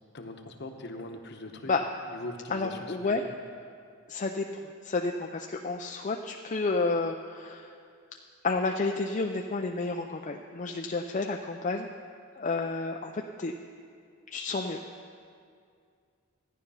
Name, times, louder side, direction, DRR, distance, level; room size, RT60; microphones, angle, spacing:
voice 1, 0.1-1.7 2.1-3.3, left 2 dB, 50° left, 5 dB, 1.0 m, -41 dB
voice 2, 2.5-3.2 4.1-7.8 8.4-11.9 12.4-13.5 14.3-14.8, left 3 dB, 35° left, 3 dB, 0.4 m, -31 dB
14.0 x 10.0 x 5.6 m, 2.3 s
head